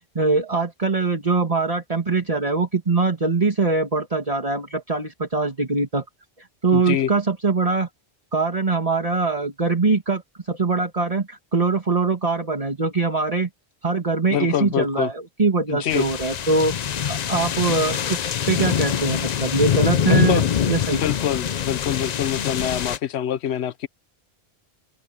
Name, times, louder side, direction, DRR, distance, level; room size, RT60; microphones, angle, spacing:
voice 1, 0.2-6.0 6.6-7.9 8.3-13.5 13.8-16.7 17.1-20.4 20.7-21.0, right 3 dB, 35° right, 2.0 m, -22 dB
voice 2, 6.7-7.1 14.3-15.1 15.7-16.0 20.1-20.5 20.9-23.9, left 10 dB, 85° left, 1.0 m, -25 dB
sound 1, 15.9-23.0, left 8 dB, 50° left, 0.6 m, -24 dB
open air
omnidirectional pair, 1.1 m